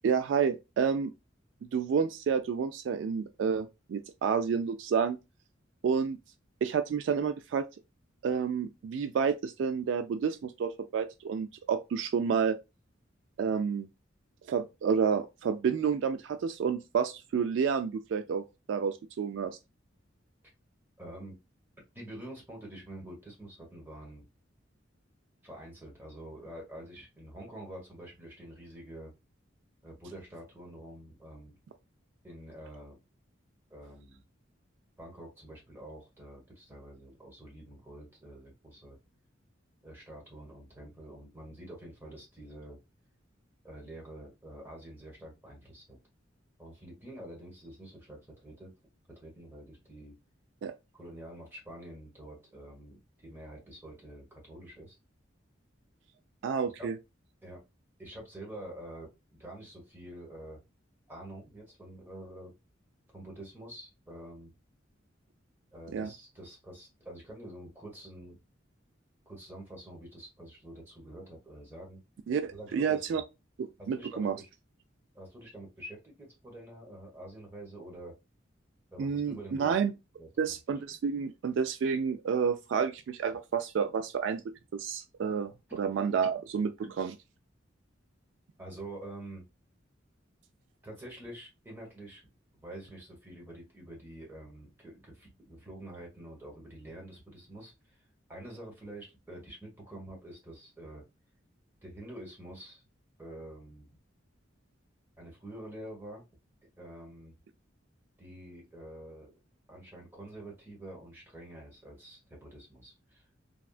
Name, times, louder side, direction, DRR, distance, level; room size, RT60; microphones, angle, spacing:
voice 1, 0.0-1.1 1.7-5.2 5.8-6.2 6.6-7.6 8.2-12.6 13.4-13.9 14.5-19.6 50.6-50.7 56.4-56.9 65.9-66.1 72.3-73.2 73.6-74.4 79.0-79.9 80.4-84.4 84.7-85.5 85.8-86.7 87.0-87.1, right 6 dB, 70° right, 0.3 m, -30 dB
voice 2, 21.0-21.4 21.9-24.3 25.4-29.1 29.8-31.5 32.2-33.0 33.7-34.2 35.0-39.0 39.8-42.8 43.6-46.0 46.6-48.7 49.1-50.1 50.9-55.0 56.8-56.9 57.4-57.6 58.0-60.6 61.1-62.5 63.1-64.5 65.7-68.4 69.2-72.0 72.5-73.2 73.8-74.5 75.1-78.1 78.9-79.8 80.2-80.5 85.7-85.8 88.6-89.4 90.8-92.2 92.6-98.0 98.3-101.0 101.8-102.8 103.2-103.9 105.2-106.2 106.8-107.3 108.2-109.3 109.7-113.3, right 1 dB, 10° right, 1.2 m, -47 dB
3.5 x 2.2 x 2.3 m
head